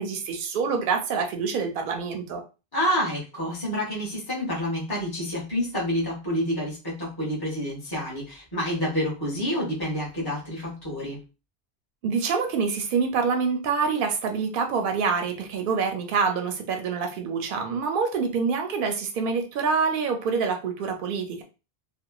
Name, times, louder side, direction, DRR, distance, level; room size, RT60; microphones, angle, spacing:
voice 1, 0.0-2.4 12.0-21.4, right 5 dB, 60° right, 4 dB, 0.7 m, -26 dB
voice 2, 2.7-11.2, equal, 20° left, -5 dB, 1.1 m, -28 dB
2.8 x 2.1 x 2.2 m, 0.30 s
omnidirectional pair, 1.1 m